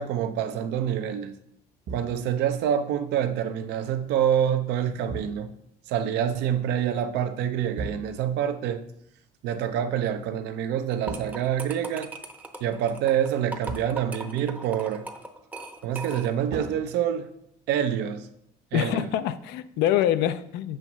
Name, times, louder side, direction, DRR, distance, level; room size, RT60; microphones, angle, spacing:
voice 1, 0.0-1.3 1.9-5.5 5.9-8.8 9.4-12.1 12.6-15.0 15.8-17.3 17.7-18.3 18.7-19.1, right 9 dB, 85° right, 8 dB, 0.6 m, -26 dB
sound 1, 1.9-2.5 5.1-5.8 7.8-8.4 11.1-12.0 13.7-14.2 16.5-17.6, right 4 dB, 65° right, 1.1 m, -39 dB
sound 2, 10.9-16.5, right 2 dB, 10° right, 0.6 m, -40 dB
voice 2, 18.7-20.8, left 11 dB, 90° left, 13 dB, 0.4 m, -25 dB
7.7 x 3.0 x 5.9 m, 0.74 s
cardioid pair, 110°, 17 cm